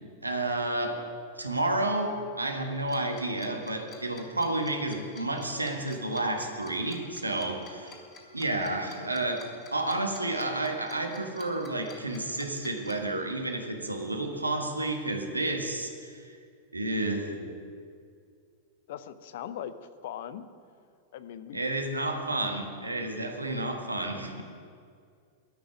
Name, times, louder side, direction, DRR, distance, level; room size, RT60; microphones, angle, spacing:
voice 1, 0.2-1.0 1.4-8.0 8.3-16.2 16.7-17.5 21.5-24.4, right 2 dB, 85° right, 3 dB, 1.6 m, -31 dB
Tick-tock, 2.9-12.9, left 5 dB, 30° left, 3.2 m, -50 dB
voice 2, 18.9-19.7 20.0-20.5 21.1-21.6, left 10 dB, 55° left, 13 dB, 0.7 m, -39 dB
13.5 x 6.4 x 10.0 m, 2.3 s
figure-of-eight pair, 95°, 0 cm